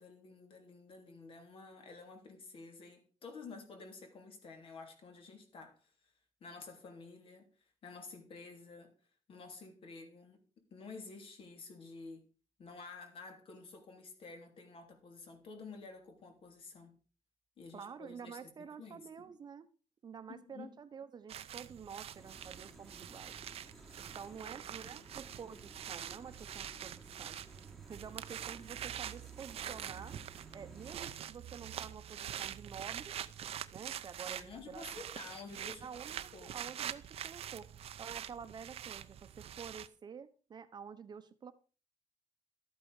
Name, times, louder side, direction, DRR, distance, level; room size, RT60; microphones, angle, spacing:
voice 1, 0.0-5.9 6.4-7.5 7.8-8.9 9.3-12.3 12.6-17.0 17.6-19.3 20.3-20.7 34.3-35.9 36.3-36.6, left 4 dB, 55° left, 3.0 m, -51 dB
voice 2, 17.7-19.7 20.0-23.3 24.0-27.4 27.8-30.1 30.5-33.1 33.7-35.1 35.8-37.7 38.0-41.5, right 6 dB, 40° right, 1.0 m, -49 dB
sound 1, 21.3-39.9, right 10 dB, 60° right, 0.7 m, -45 dB
sound 2, 22.1-31.2, equal, 5° left, 1.7 m, -58 dB
13.0 x 8.7 x 5.0 m
cardioid pair, 155°, 11 cm